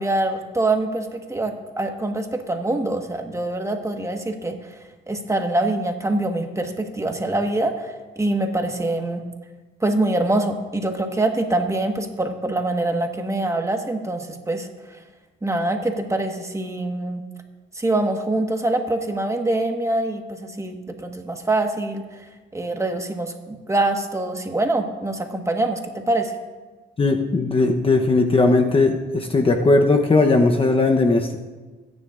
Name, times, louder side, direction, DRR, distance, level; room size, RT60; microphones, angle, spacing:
voice 1, 0.0-4.6 5.1-9.2 9.8-14.7 15.4-17.2 17.7-22.0 22.5-26.3, right 2 dB, 15° right, 4 dB, 1.4 m, -24 dB
voice 2, 27.0-31.3, left 3 dB, 30° left, 4 dB, 0.9 m, -18 dB
25.0 x 10.0 x 2.5 m, 1.3 s
cardioid pair, 90°, 20 cm